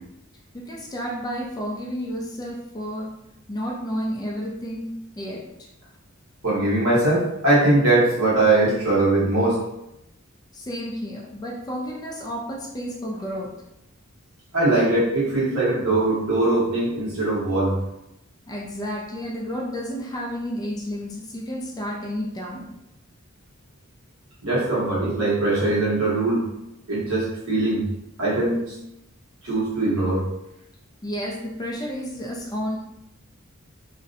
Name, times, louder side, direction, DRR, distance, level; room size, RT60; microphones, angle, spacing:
voice 1, 0.5-3.2 3.5-4.9 5.2-5.7 10.5-13.5 18.5-22.7 31.0-32.8, equal, 20° left, -2 dB, 0.3 m, -31 dB
voice 2, 6.4-9.6 14.5-17.8 24.4-26.4 26.9-27.8 28.2-28.7 29.4-30.2, right 2 dB, 75° right, -7 dB, 1.1 m, -21 dB
2.6 x 2.1 x 2.5 m, 0.86 s
head